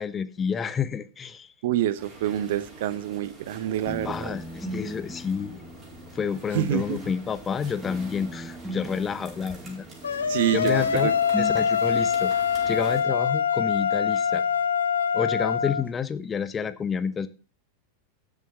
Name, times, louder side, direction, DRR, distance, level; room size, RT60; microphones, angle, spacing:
voice 1, 0.0-1.5 4.0-5.6 6.1-9.8 10.2-10.3 10.5-12.3 12.7-14.4 15.1-17.3, left 6 dB, 20° left, 1.0 m, -29 dB
voice 2, 1.6-4.4 6.5-7.0 10.3-11.1, right 12 dB, 55° right, 0.9 m, -27 dB
sound 1, 2.0-13.0, right 2 dB, 20° right, 4.6 m, -46 dB
sound 2, 3.9-7.5 7.8-10.6 10.9-11.9, right 1 dB, ahead, 1.5 m, -39 dB
sound 3, 10.0-15.8, left 7 dB, 70° left, 1.1 m, -24 dB
12.5 x 7.5 x 5.5 m
figure-of-eight pair, 90°, 0 cm